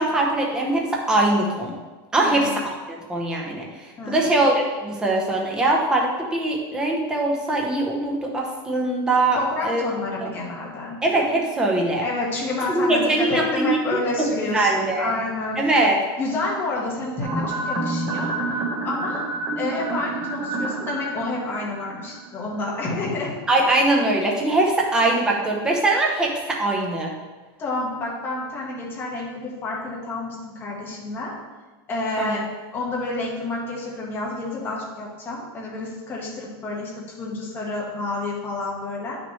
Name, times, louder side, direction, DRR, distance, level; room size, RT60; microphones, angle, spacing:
voice 1, 0.0-1.7 2.1-9.8 10.2-10.3 11.0-12.1 12.7-15.2 15.6-16.0 23.5-27.1 32.2-32.4, right 2 dB, 5° right, -1 dB, 0.7 m, -22 dB
voice 2, 2.2-2.6 4.0-4.3 9.3-11.0 12.0-15.6 16.2-18.3 18.8-19.2 19.6-23.3 27.6-31.3 31.9-32.4 32.7-39.2, left 2 dB, 15° left, -4 dB, 1.5 m, -29 dB
sound 1, 17.2-22.6 22.8-22.9, right 2 dB, 20° right, 1.3 m, -28 dB
9.2 x 6.1 x 3.2 m, 1.3 s
supercardioid pair, 175°, 13 cm